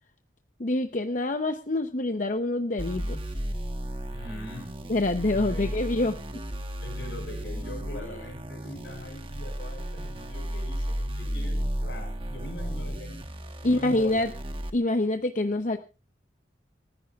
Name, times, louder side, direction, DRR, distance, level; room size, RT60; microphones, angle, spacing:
voice 1, 0.6-3.2 4.9-6.1 13.6-14.3 14.7-15.8, left 2 dB, 45° left, 7 dB, 0.8 m, -26 dB
sound 1, 2.8-14.7, equal, 30° right, 1.1 m, -34 dB
voice 2, 4.1-4.7 5.3-5.9 6.8-13.2 13.6-14.3, left 1 dB, 70° left, 2 dB, 5.7 m, -42 dB
27.5 x 10.5 x 2.4 m, 0.31 s
head